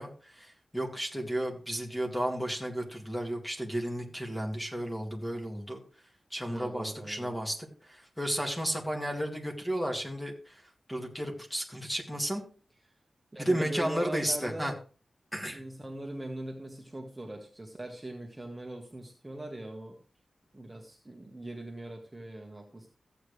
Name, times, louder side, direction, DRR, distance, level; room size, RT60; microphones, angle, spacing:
voice 1, 0.0-5.8 6.3-7.6 7.8-12.4 13.4-14.7 15.3-15.6, equal, 10° left, 1 dB, 2.0 m, -33 dB
voice 2, 6.4-7.3 13.3-14.7 15.5-20.0 20.5-22.9, right 1 dB, 15° right, 1 dB, 1.4 m, -41 dB
14.5 x 8.2 x 3.2 m, 0.37 s
wide cardioid pair, 155°, 0 cm